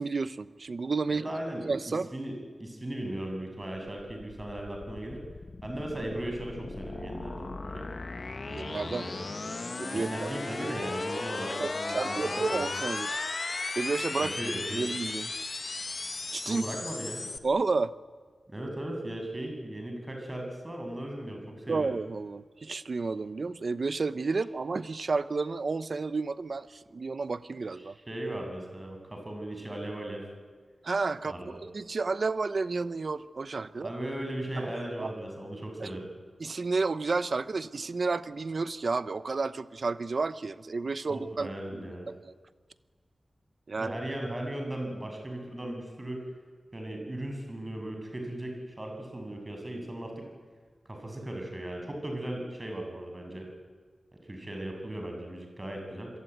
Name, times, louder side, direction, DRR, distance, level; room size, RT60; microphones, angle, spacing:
voice 1, 0.0-1.2 1.6-2.1 8.4-9.0 9.8-10.1 11.6-13.2 13.8-14.3 14.7-15.3 16.3-16.6 17.4-17.9 21.7-27.9 30.8-31.3 31.7-33.9 35.0-35.1 35.8-35.9 36.4-42.3 43.7-43.9, right 4 dB, 60° right, 14 dB, 0.9 m, -31 dB
voice 2, 1.1-1.7 2.1-5.2 5.6-7.9 8.9-9.2 9.9-12.8 14.2-14.9 16.5-17.3 18.5-22.0 27.9-30.2 31.3-31.6 33.8-36.1 41.1-42.1 43.8-46.2 46.7-50.2 50.9-53.5 54.1-56.1, right 1 dB, 25° right, 3 dB, 7.1 m, -37 dB
sound 1, 4.0-17.4, left 3 dB, 50° left, 1.6 m, -36 dB
27.0 x 22.5 x 9.4 m, 1.5 s
wide cardioid pair, 100°, 0 cm